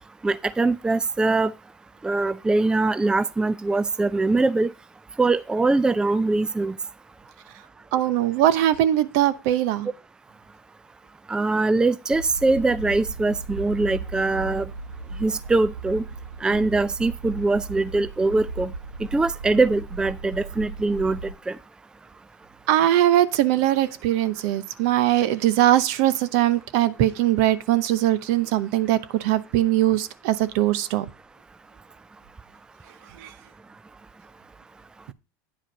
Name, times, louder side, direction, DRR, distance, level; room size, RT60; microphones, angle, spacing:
voice 1, 0.2-1.5 2.0-4.7 5.2-6.8 11.3-14.7 15.2-16.0 16.4-18.7 19.1-21.6, right 3 dB, 10° right, 0.4 m, -22 dB
voice 2, 7.9-9.9 22.7-31.1 33.2-33.3, right 13 dB, 60° right, 0.8 m, -21 dB
sound 1, 12.1-21.3, right 3 dB, 85° right, 1.3 m, -36 dB
9.5 x 5.0 x 5.2 m
hypercardioid pair, 90°, 10 cm